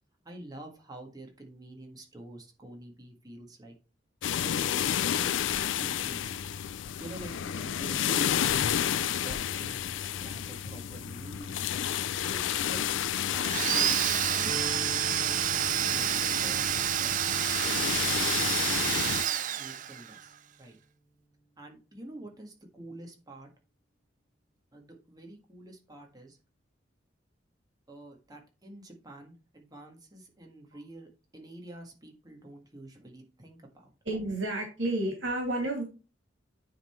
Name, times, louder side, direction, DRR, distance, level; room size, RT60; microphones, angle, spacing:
voice 1, 0.2-3.7 4.3-6.4 7.0-11.6 12.2-12.8 13.3-17.2 17.9-20.8 21.6-23.5 24.7-26.4 27.9-33.9, right 1 dB, 20° right, 1 dB, 1.7 m, -47 dB
sound 1, 4.2-19.2, left 9 dB, 75° left, 0.4 m, -31 dB
Domestic sounds home sounds, 13.4-20.2, right 10 dB, 45° right, 0.4 m, -29 dB
sound 2, 14.5-20.4, right 1 dB, 15° left, 1.6 m, -46 dB
voice 2, 34.1-35.8, right 1 dB, 80° right, 1 dB, 2.2 m, -30 dB
9.6 x 3.8 x 4.4 m, 0.32 s
head